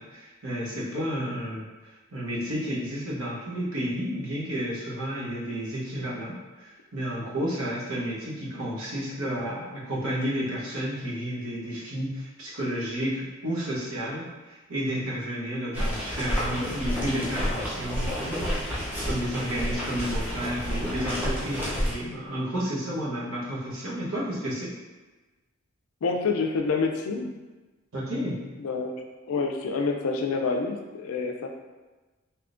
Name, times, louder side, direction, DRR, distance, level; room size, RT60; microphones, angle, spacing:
voice 1, 0.0-1.7 2.1-24.7 27.9-28.4, equal, 80° right, -6 dB, 1.0 m, -31 dB
sound 1, 15.7-21.9, equal, 10° right, 0.6 m, -30 dB
voice 2, 26.0-27.3 28.6-28.9 29.3-31.5, left 4 dB, 75° left, 3 dB, 0.4 m, -27 dB
3.5 x 2.8 x 2.5 m, 1.2 s
head